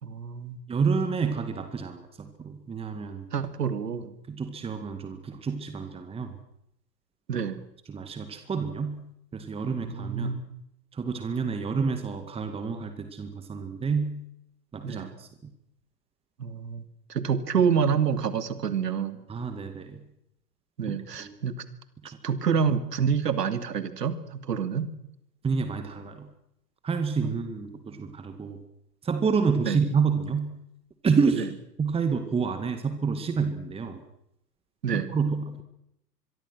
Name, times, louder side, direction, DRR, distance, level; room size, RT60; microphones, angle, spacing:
voice 1, 0.0-0.6 3.3-4.2 7.3-7.6 9.8-10.4 14.8-15.2 16.4-16.8 17.1-19.2 20.8-21.5 22.2-24.9 27.2-27.3 29.6-29.8 34.8-35.1, right 7 dB, 70° right, 12 dB, 2.8 m, -27 dB
voice 2, 0.7-3.3 4.3-6.4 7.9-10.3 10.9-14.2 14.7-15.3 19.3-20.0 20.9-21.4 25.4-26.3 26.8-28.6 29.0-30.6 31.0-34.0 34.9-35.6, right 5 dB, 10° right, 8 dB, 2.1 m, -29 dB
26.0 x 23.0 x 6.3 m, 0.80 s
figure-of-eight pair, 110°, 50 cm